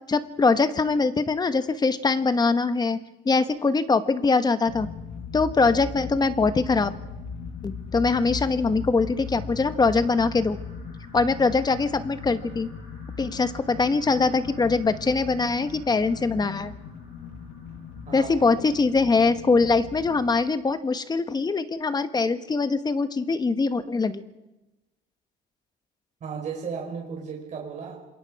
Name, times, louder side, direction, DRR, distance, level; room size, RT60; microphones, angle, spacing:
voice 1, 0.1-3.0 3.2-4.9 5.3-6.9 7.6-10.6 11.1-12.7 13.2-16.7 18.1-24.2, left 4 dB, 25° left, 1.2 m, -23 dB
sound 1, 4.6-20.3, left 5 dB, 80° left, 6.2 m, -38 dB
voice 2, 26.2-28.0, right 6 dB, 45° right, 4.3 m, -34 dB
27.0 x 21.5 x 4.8 m
cardioid pair, 110°, 17 cm